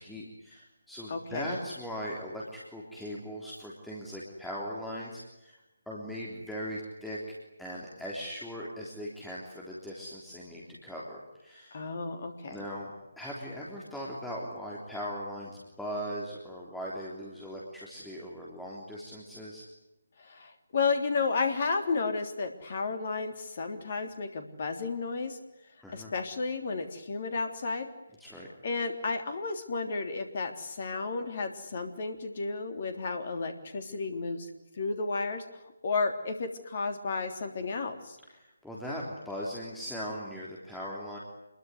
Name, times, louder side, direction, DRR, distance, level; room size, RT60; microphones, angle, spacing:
voice 1, 0.0-5.6 5.9-7.2 7.6-11.8 12.5-12.9 13.2-19.6 25.8-26.1 28.2-28.5 38.2-41.2, equal, 5° left, -5 dB, 3.4 m, -39 dB
voice 2, 1.1-1.6 11.7-12.6 20.2-25.4 25.9-27.9 28.6-34.5 34.7-35.4 35.8-38.2, left 4 dB, 40° left, 7 dB, 3.4 m, -32 dB
27.5 x 22.0 x 9.7 m, 0.94 s
figure-of-eight pair, 150°, 0 cm